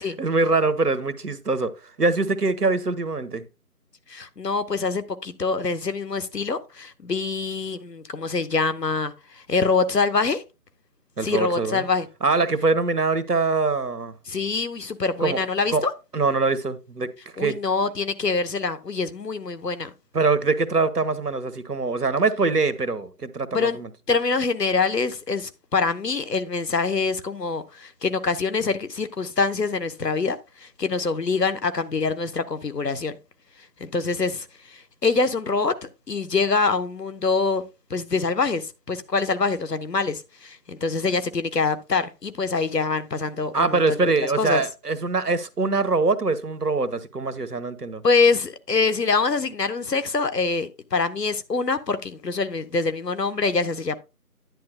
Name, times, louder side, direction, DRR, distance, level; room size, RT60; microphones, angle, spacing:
voice 1, 0.0-1.7 2.0-3.4 11.2-11.8 12.2-14.2 15.2-15.4 15.7-15.8 16.1-17.1 17.4-17.6 20.1-23.9 43.5-48.0, right 3 dB, 80° right, 1.1 m, -23 dB
voice 2, 4.1-10.4 11.2-12.1 14.3-15.9 17.4-19.9 23.5-23.8 24.1-33.2 33.8-37.6 37.9-44.6 48.0-54.0, left 4 dB, 90° left, 1.1 m, -25 dB
10.5 x 9.4 x 2.3 m
figure-of-eight pair, 180°, 47 cm